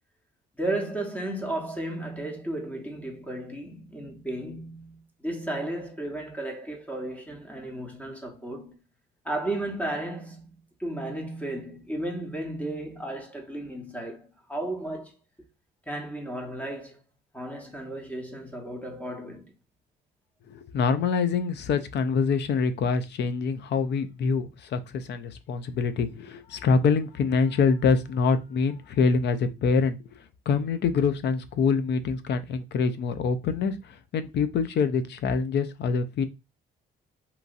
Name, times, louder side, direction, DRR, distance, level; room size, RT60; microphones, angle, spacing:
voice 1, 0.6-8.8 9.2-15.1 15.9-17.0 17.3-19.5, right 1 dB, 5° left, 1.0 m, -34 dB
voice 2, 20.5-36.3, left 5 dB, 60° left, 0.5 m, -25 dB
2.9 x 2.6 x 2.5 m
cardioid pair, 90°, 20 cm